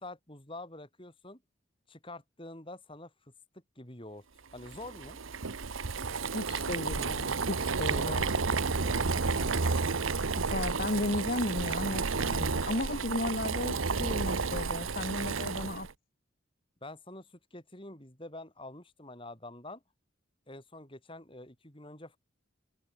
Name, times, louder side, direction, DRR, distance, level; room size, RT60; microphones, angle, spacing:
voice 1, 0.0-1.4 1.9-4.2 4.5-5.2 7.7-9.7 16.8-19.8 20.5-22.2, left 2 dB, 25° left, 5.0 m, -47 dB
Boiling, 4.6-15.9, right 4 dB, 85° right, 1.1 m, -31 dB
voice 2, 6.3-8.2 10.4-15.9, left 2 dB, 50° left, 1.5 m, -34 dB
head